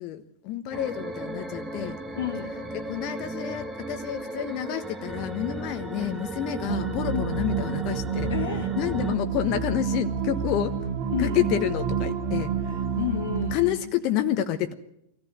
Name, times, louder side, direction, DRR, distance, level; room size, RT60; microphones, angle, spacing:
voice 1, 0.0-2.0 2.7-8.3 8.8-10.8 11.2-12.8 13.5-14.7, left 11 dB, 40° left, 8 dB, 1.2 m, -29 dB
sound 1, 0.7-9.2, right 2 dB, 15° right, 1.9 m, -35 dB
voice 2, 2.2-2.6 7.1-7.3 8.3-8.7 11.1-11.5 12.9-13.9, left 10 dB, 60° left, 2 dB, 1.5 m, -31 dB
sound 2, 6.7-13.5, right 6 dB, 40° right, 2.2 m, -29 dB
25.0 x 14.5 x 7.9 m, 0.77 s
figure-of-eight pair, 90°, 0 cm